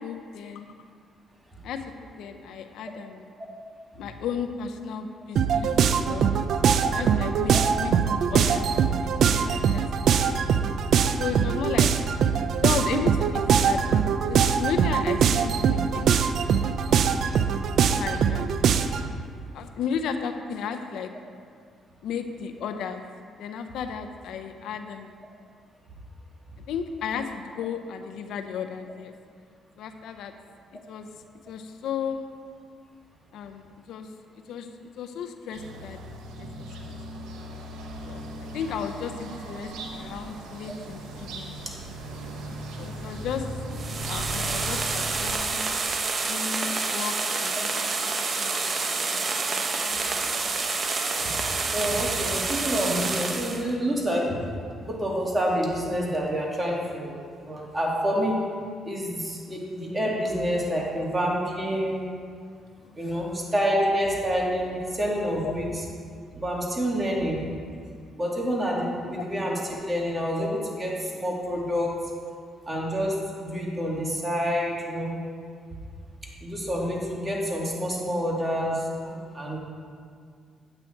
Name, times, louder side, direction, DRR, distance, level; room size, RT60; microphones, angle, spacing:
voice 1, 0.0-0.7 1.6-3.3 4.0-6.3 6.9-10.5 11.2-11.9 12.6-14.0 14.3-16.1 16.7-17.1 17.9-18.7 19.5-21.1 22.0-23.0 23.4-25.1 26.7-29.1 29.8-30.3 30.9-31.1 31.5-32.2 33.3-34.1 34.5-34.7 35.0-36.0 36.4-37.0 38.0-41.6 42.8-43.4 44.1-45.7 46.2-49.2 49.5-50.5 61.0-61.1 62.8-63.0 65.4-65.6 69.2-69.3, left 7 dB, 80° left, 7 dB, 0.6 m, -34 dB
sound 1, 5.4-19.1, right 7 dB, 65° right, 0.4 m, -22 dB
sound 2, 35.5-45.4, right 1 dB, 85° right, 1.2 m, -38 dB
sound 3, 43.7-53.6, right 4 dB, 40° right, 0.9 m, -28 dB
voice 2, 51.7-54.4 54.8-57.2 57.4-58.4 58.8-62.1 63.0-65.7 66.3-67.4 68.2-71.9 72.7-75.1 76.4-79.6, equal, 20° right, -3 dB, 2.3 m, -28 dB
8.9 x 8.3 x 4.5 m, 2.1 s
cardioid pair, 80°, 0 cm